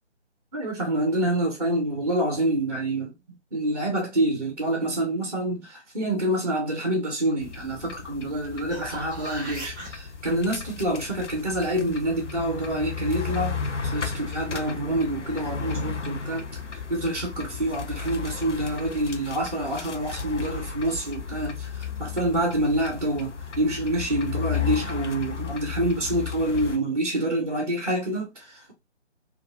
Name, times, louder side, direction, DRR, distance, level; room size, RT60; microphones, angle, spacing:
voice 1, 0.5-3.1 3.5-16.4 16.9-28.7, right 1 dB, 35° right, 0.6 m, -27 dB
sound 1, 7.4-26.8, left 6 dB, 90° left, 0.6 m, -34 dB
sound 2, 8.4-9.9 14.7-14.8, right 1 dB, ahead, 1.1 m, -38 dB
2.9 x 2.3 x 2.4 m
figure-of-eight pair, 155°, 35 cm